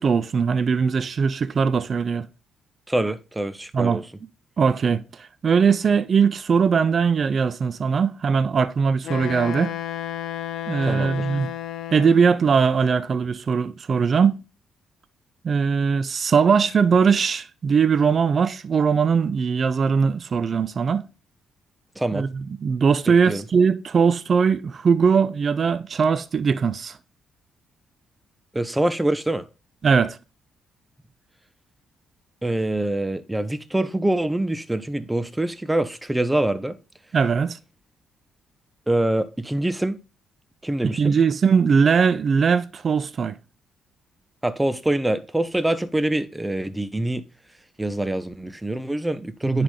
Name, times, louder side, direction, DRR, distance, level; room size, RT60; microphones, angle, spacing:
voice 1, 0.0-2.3 3.7-4.0 4.6-9.7 10.7-11.5 11.9-14.4 15.4-21.1 22.1-27.0 29.8-30.2 37.1-37.6 40.8-43.4 49.4-49.6, right 6 dB, 50° right, 0.7 m, -20 dB
voice 2, 2.9-4.0 10.9-11.3 22.0-22.3 23.1-23.4 28.5-29.4 32.4-36.8 38.9-40.0 40.6-41.1 44.4-47.2 47.8-49.6, right 1 dB, 10° right, 1.2 m, -25 dB
Wind instrument woodwind instrument, 9.0-12.5, left 12 dB, 75° left, 0.7 m, -32 dB
10.5 x 4.9 x 3.8 m
supercardioid pair, 65°, 0 cm